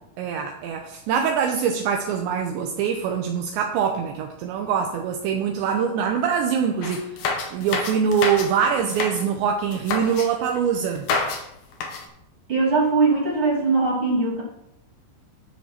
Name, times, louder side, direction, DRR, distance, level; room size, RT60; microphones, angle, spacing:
voice 1, 0.2-7.1 7.5-11.1, right 7 dB, 75° right, 3 dB, 3.0 m, -24 dB
sound 1, 6.8-8.5 8.8-9.2 9.7-10.3 11.0-11.4 11.7-12.1, left 4 dB, 60° left, 2.7 m, -27 dB
voice 2, 12.5-14.4, right 3 dB, 35° right, -3 dB, 2.6 m, -20 dB
13.0 x 7.0 x 5.8 m, 0.81 s
omnidirectional pair, 5.4 m